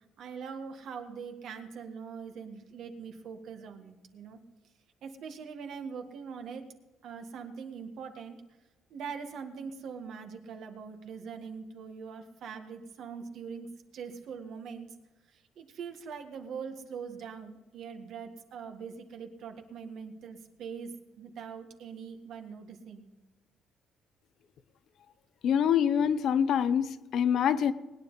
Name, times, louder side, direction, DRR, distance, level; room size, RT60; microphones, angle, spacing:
voice 1, 0.2-4.4 5.0-6.7 7.0-8.4 8.9-13.7 13.9-14.9 15.3-23.1, right 6 dB, 60° right, 6 dB, 1.7 m, -42 dB
voice 2, 25.4-27.7, left 8 dB, 55° left, 12 dB, 0.7 m, -25 dB
20.0 x 10.0 x 4.0 m, 1.1 s
cardioid pair, 165°, 0 cm